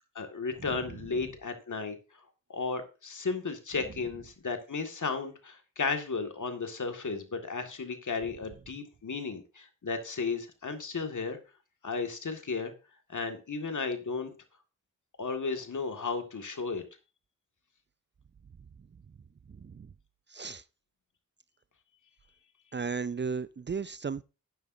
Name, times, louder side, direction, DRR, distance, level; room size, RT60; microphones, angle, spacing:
voice 1, 0.2-2.2 2.5-11.4 11.8-12.7 13.1-14.3 15.2-16.8, left 4 dB, 65° left, 2.0 m, -34 dB
voice 2, 19.5-19.9 20.3-20.6 22.7-24.2, right 5 dB, 35° right, 0.5 m, -35 dB
12.5 x 9.3 x 2.7 m
cardioid pair, 50°, 33 cm